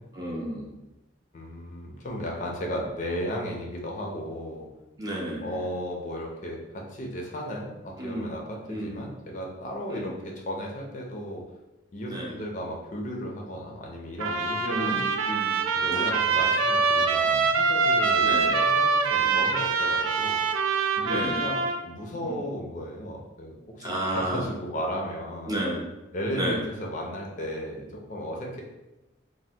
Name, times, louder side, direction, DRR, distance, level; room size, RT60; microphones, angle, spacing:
voice 1, 0.2-0.7 5.0-5.5 8.0-8.3 8.7-9.1 9.9-10.1 12.1-12.3 14.6-15.6 15.9-16.1 18.2-18.4 19.2-19.4 21.0-21.4 23.8-24.4 25.5-25.8 26.3-26.6, right 1 dB, 20° right, -3 dB, 0.5 m, -31 dB
voice 2, 1.3-4.7 5.4-11.5 11.9-15.0 15.8-20.4 21.0-25.6 26.1-28.6, equal, 40° left, -1 dB, 0.4 m, -35 dB
Trumpet, 14.2-21.8, right 4 dB, 85° right, 0.3 m, -24 dB
3.2 x 2.1 x 2.7 m, 1.0 s
head